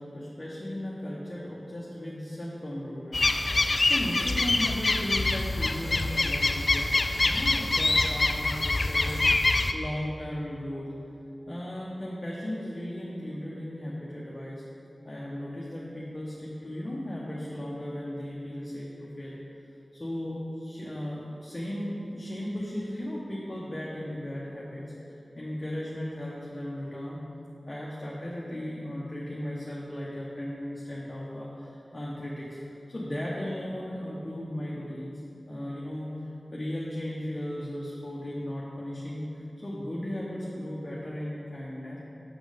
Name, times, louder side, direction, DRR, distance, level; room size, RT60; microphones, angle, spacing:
voice 1, 0.0-3.2 3.5-9.3 9.7-10.9 11.5-14.6 15.0-19.4 19.9-27.2 27.7-32.6 32.9-42.0, left 1 dB, 30° left, -6 dB, 1.0 m, -36 dB
sound 1, 3.1-9.7, left 2 dB, 50° left, 0.3 m, -25 dB
6.2 x 6.1 x 5.1 m, 2.9 s
wide cardioid pair, 80°, 0 cm